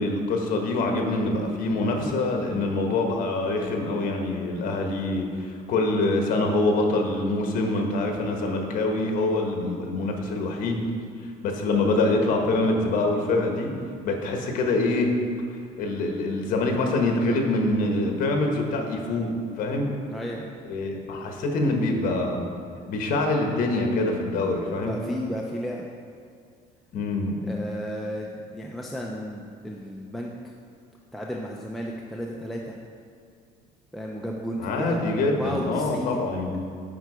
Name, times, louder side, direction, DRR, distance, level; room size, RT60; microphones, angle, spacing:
voice 1, 0.0-10.9 11.4-13.7 14.0-15.1 15.8-19.9 20.7-22.5 22.9-24.9 26.9-27.4 34.6-36.6, left 2 dB, 55° left, 3 dB, 1.2 m, -25 dB
voice 2, 7.5-8.1 20.1-20.6 24.8-25.9 27.5-30.5 31.1-32.8 33.9-36.2, equal, ahead, -2 dB, 0.4 m, -34 dB
9.2 x 4.6 x 5.0 m, 2.3 s
cardioid pair, 155°, 17 cm